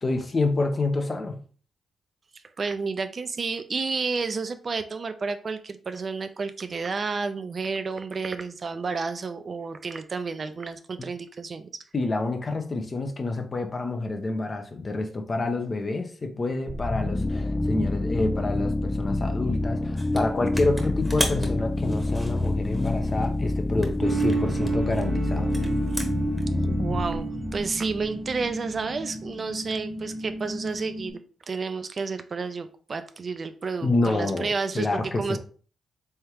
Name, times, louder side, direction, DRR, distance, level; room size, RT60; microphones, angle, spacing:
voice 1, 0.0-1.4 11.9-25.5 33.8-35.4, left 2 dB, 40° left, 0.8 m, -28 dB
voice 2, 2.6-11.7 26.6-31.2 31.5-35.4, right 4 dB, 50° right, 0.4 m, -31 dB
sound 1, 16.7-28.4, left 2 dB, 20° left, 0.3 m, -27 dB
sound 2, 20.0-20.2 20.5-23.4 23.8-26.4, equal, ahead, 1.1 m, -35 dB
sound 3, 24.0-31.1, right 3 dB, 30° right, 0.9 m, -32 dB
3.5 x 3.4 x 2.9 m
supercardioid pair, 55°, 0 cm